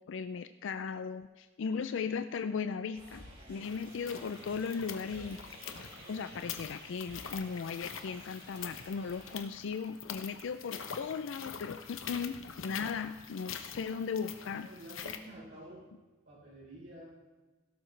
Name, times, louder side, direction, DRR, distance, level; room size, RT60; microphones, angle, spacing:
voice 1, 0.0-3.2 3.5-5.4 6.1-14.7, left 5 dB, 65° left, 10 dB, 0.4 m, -37 dB
sound 1, 2.9-9.3, right 1 dB, 35° right, 4.6 m, -52 dB
sound 2, 3.6-15.2, left 7 dB, 90° left, 0.9 m, -45 dB
voice 2, 14.6-15.9 16.3-17.2, right 1 dB, 65° right, -7 dB, 4.0 m, -50 dB
16.5 x 12.5 x 3.3 m, 1.2 s
head